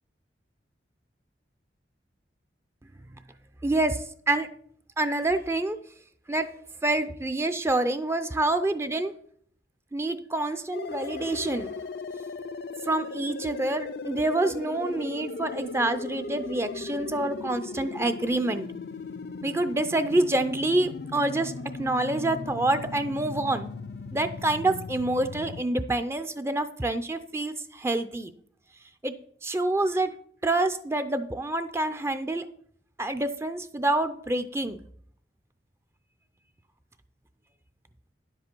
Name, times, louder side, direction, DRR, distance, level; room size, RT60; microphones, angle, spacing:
voice 1, 3.6-4.5 5.0-5.8 6.3-6.5 6.8-9.1 9.9-11.7 12.9-18.7 19.4-21.5 21.8-23.7 24.1-28.3 29.0-29.1 29.4-30.1 30.4-32.4 33.0-34.8, right 2 dB, 15° right, 10 dB, 0.4 m, -27 dB
sound 1, 10.7-25.6, left 4 dB, 60° left, 0.4 m, -37 dB
10.0 x 7.7 x 4.4 m, 0.62 s
head